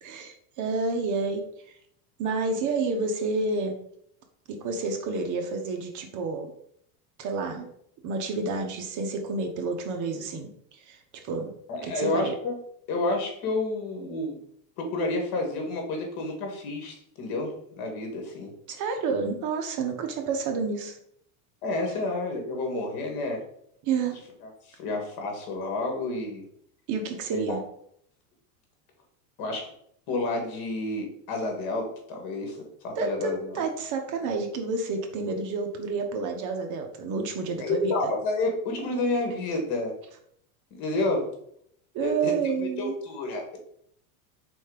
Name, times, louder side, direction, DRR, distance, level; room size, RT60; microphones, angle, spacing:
voice 1, 0.0-1.7 2.2-3.8 4.5-6.5 7.2-7.7 8.0-10.5 10.9-11.0 11.2-11.5 11.8-12.3 18.7-21.0 23.8-24.2 26.9-27.6 33.0-37.9 41.9-42.9, right 4 dB, 40° right, 4 dB, 1.0 m, -29 dB
voice 2, 11.7-12.6 12.9-14.4 14.8-18.5 21.6-23.4 24.4-26.4 27.3-27.6 29.4-29.7 30.1-33.5 37.6-39.9 40.7-41.3 42.0-43.6, left 2 dB, 50° left, 3 dB, 2.0 m, -30 dB
4.6 x 4.2 x 5.1 m, 0.69 s
supercardioid pair, 140°, 46 cm